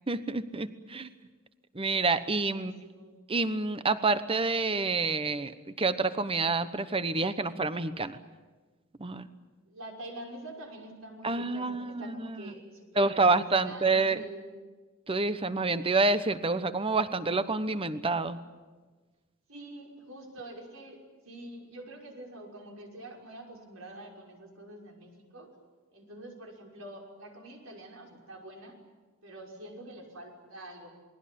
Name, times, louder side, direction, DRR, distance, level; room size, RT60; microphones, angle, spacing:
voice 1, 0.1-1.1 1.7-2.7 3.3-8.2 9.0-9.3 11.2-12.5 13.0-14.2 15.1-18.4, right 3 dB, 25° right, 12 dB, 1.0 m, -28 dB
voice 2, 2.5-3.2 9.7-14.5 19.5-25.5 25.9-28.8 29.2-30.9, right 1 dB, 80° right, 1 dB, 5.9 m, -46 dB
28.0 x 21.0 x 8.6 m, 1.3 s
head